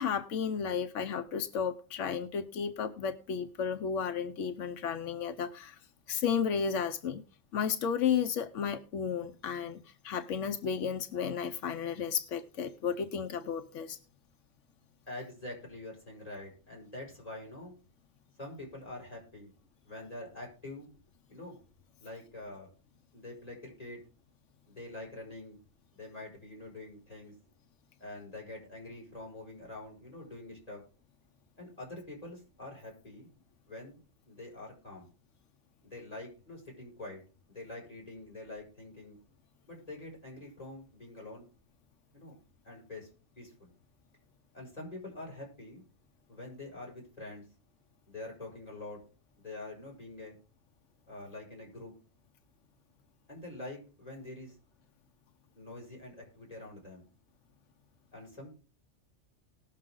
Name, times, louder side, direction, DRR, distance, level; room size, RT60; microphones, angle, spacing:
voice 1, 0.0-5.8 6.1-7.2 7.5-14.0, left 7 dB, 90° left, 9 dB, 1.1 m, -33 dB
voice 2, 15.1-17.7 18.4-19.5 19.8-20.9 21.3-21.5 22.0-22.7 23.1-24.0 24.7-25.6 25.9-27.3 28.0-30.8 31.6-33.3 33.7-34.0 34.3-35.1 35.8-37.2 37.5-39.2 39.7-41.4 42.1-42.4 42.6-43.1 43.4-43.7 44.5-45.8 46.3-47.4 48.1-49.0 49.4-50.4 51.1-51.9 53.3-54.6 55.5-57.0 58.1-58.5, left 2 dB, 30° left, -2 dB, 6.0 m, -45 dB
19.0 x 6.6 x 3.8 m, 0.35 s
omnidirectional pair, 1.2 m